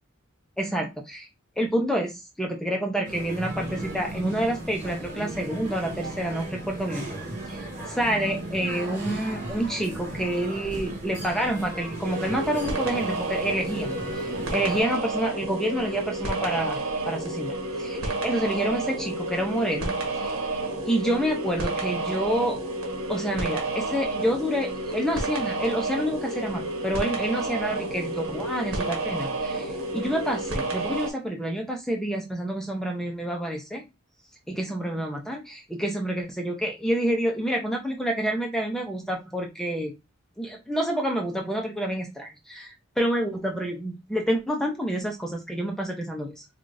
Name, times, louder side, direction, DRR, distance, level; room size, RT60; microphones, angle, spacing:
voice 1, 0.6-1.3 1.6-7.1 7.5-7.6 7.9-20.4 20.9-22.6 23.1-33.8 34.5-39.9 40.4-46.4, right 1 dB, ahead, 1 dB, 0.6 m, -28 dB
sound 1, 3.0-14.8, right 1 dB, 55° right, 1.8 m, -36 dB
sound 2, 12.0-31.1, right 2 dB, 80° right, 1.3 m, -30 dB
4.8 x 2.4 x 2.5 m, 0.23 s
head